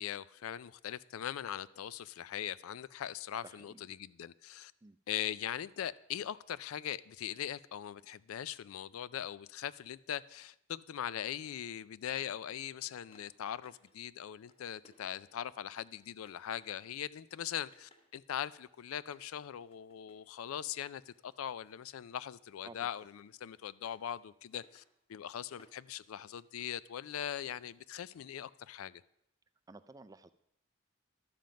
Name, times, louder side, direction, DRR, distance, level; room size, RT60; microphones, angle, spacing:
voice 1, 0.0-4.7 5.1-24.8 25.1-29.0, left 10 dB, 90° left, 0.4 m, -41 dB
voice 2, 3.4-3.8 4.8-5.0 22.6-22.9 29.7-30.3, right 3 dB, 15° right, 0.3 m, -53 dB
sound 1, 12.8-13.9 14.3-15.5 16.0-16.9 17.3-18.1 19.0-22.0 22.3-28.3, left 1 dB, 30° left, 1.5 m, -67 dB
11.5 x 7.6 x 5.1 m
head